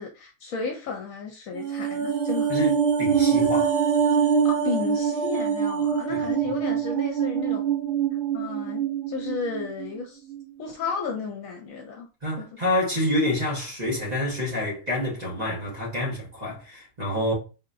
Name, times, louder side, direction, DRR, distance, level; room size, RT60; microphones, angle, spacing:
voice 1, 0.0-2.5 4.4-7.6 8.3-10.2 10.6-12.1 12.4-12.5, left 5 dB, 70° left, 1.0 m, -33 dB
sound 1, 1.5-10.0 10.3-10.4, right 7 dB, 55° right, 1.3 m, -24 dB
voice 2, 2.5-3.8 6.1-6.2 12.2-17.3, left 1 dB, 30° right, 1.4 m, -28 dB
4.5 x 2.9 x 2.5 m
omnidirectional pair, 1.5 m